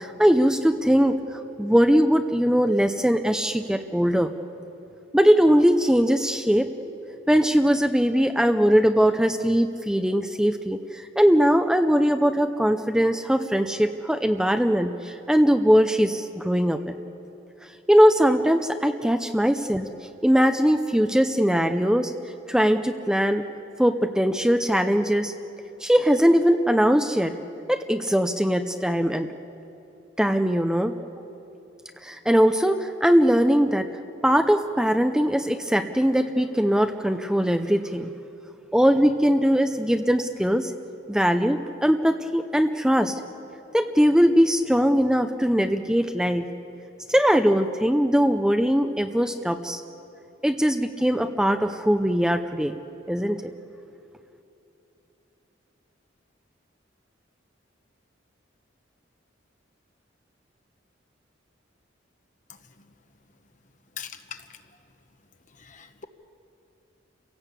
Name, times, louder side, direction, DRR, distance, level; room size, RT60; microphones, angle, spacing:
voice 1, 0.0-4.3 5.1-6.7 7.3-16.8 17.9-19.9 20.2-22.1 22.5-23.5 23.8-25.3 25.8-27.3 27.7-29.3 30.2-30.9 32.0-33.9 34.2-38.1 38.7-40.7 41.1-43.1 43.7-46.4 47.1-49.8 50.4-52.8 53.1-53.5, equal, 5° right, 7 dB, 0.6 m, -21 dB
voice 2, 64.0-64.4 65.6-66.0, left 7 dB, 40° left, 8 dB, 1.2 m, -40 dB
29.5 x 16.5 x 8.3 m, 2.9 s
head